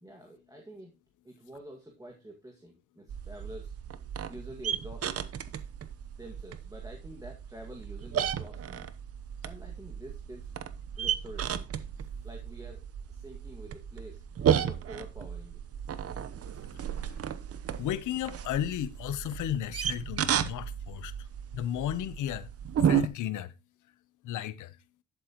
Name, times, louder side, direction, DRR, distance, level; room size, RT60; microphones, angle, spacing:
voice 1, 0.0-1.0 1.2-3.8 4.3-5.1 6.2-8.9 9.4-10.5 11.0-11.6 12.2-15.6, right 1 dB, 10° right, 2.0 m, -47 dB
sound 1, 3.1-23.1, right 8 dB, 50° right, 0.9 m, -33 dB
voice 2, 17.8-21.1 21.5-22.5 22.8-23.5 24.2-24.8, left 11 dB, 80° left, 0.9 m, -34 dB
11.0 x 8.1 x 3.0 m
cardioid pair, 90°, 30 cm